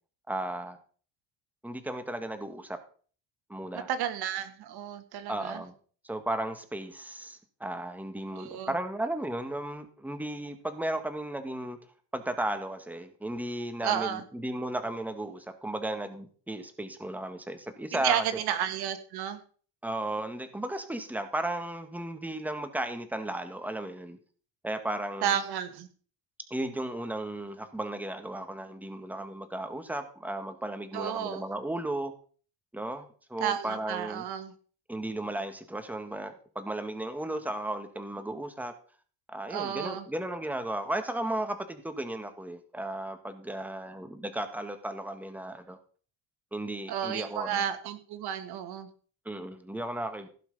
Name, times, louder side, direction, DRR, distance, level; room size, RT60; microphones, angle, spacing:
voice 1, 0.3-0.8 1.6-2.8 3.5-3.9 5.3-5.7 6.0-11.8 12.1-18.2 19.8-24.2 24.6-25.4 26.5-32.1 32.7-33.1 33.3-34.2 34.9-38.7 39.3-45.8 46.5-47.6 49.3-50.3, right 1 dB, 5° right, 8 dB, 1.9 m, -35 dB
voice 2, 3.9-5.6 8.3-8.7 13.8-14.2 17.9-19.4 25.2-25.9 30.9-31.4 33.4-34.5 39.5-40.1 46.9-48.9, right 9 dB, 70° right, 10 dB, 1.7 m, -32 dB
16.0 x 6.2 x 5.6 m, 0.43 s
cardioid pair, 100°, 39 cm